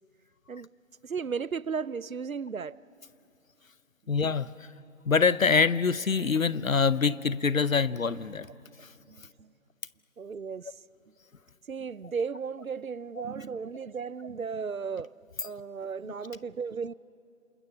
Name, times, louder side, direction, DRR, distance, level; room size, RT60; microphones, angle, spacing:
voice 1, 1.0-2.8 9.1-9.5 10.2-10.8 11.7-15.1 15.4-16.9, right 5 dB, 80° right, 0.7 m, -35 dB
voice 2, 4.1-4.7 5.0-8.5 8.8-8.9, left 5 dB, 75° left, 0.8 m, -25 dB
28.0 x 27.5 x 7.0 m
figure-of-eight pair, 160°, 41 cm